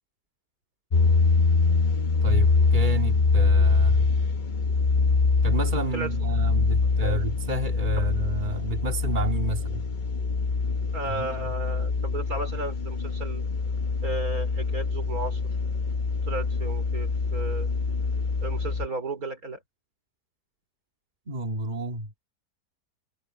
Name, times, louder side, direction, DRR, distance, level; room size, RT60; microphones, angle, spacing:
sound 1, 0.9-18.9, left 4 dB, 40° left, 0.8 m, -24 dB
voice 1, 2.2-4.1 5.4-9.8 11.0-11.5 21.3-22.2, right 1 dB, 25° right, 2.9 m, -30 dB
voice 2, 10.9-13.4 14.0-15.4 16.2-17.7 18.4-19.6, right 2 dB, 55° right, 5.0 m, -34 dB
omnidirectional pair, 1.8 m